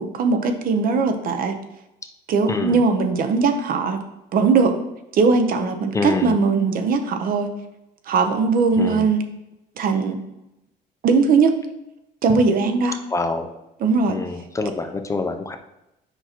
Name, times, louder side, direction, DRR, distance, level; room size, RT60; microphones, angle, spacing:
voice 1, 0.0-1.6 2.3-4.0 4.3-4.8 5.1-7.5 8.1-9.2 9.8-10.2 11.0-11.5 12.2-13.0 13.8-14.2, right 4 dB, 60° right, 7 dB, 0.9 m, -19 dB
voice 2, 5.9-6.3 8.8-9.1 13.1-13.5 14.1-15.6, left 3 dB, 20° left, 6 dB, 0.6 m, -26 dB
8.1 x 5.6 x 3.0 m, 0.90 s
cardioid pair, 110°, 17 cm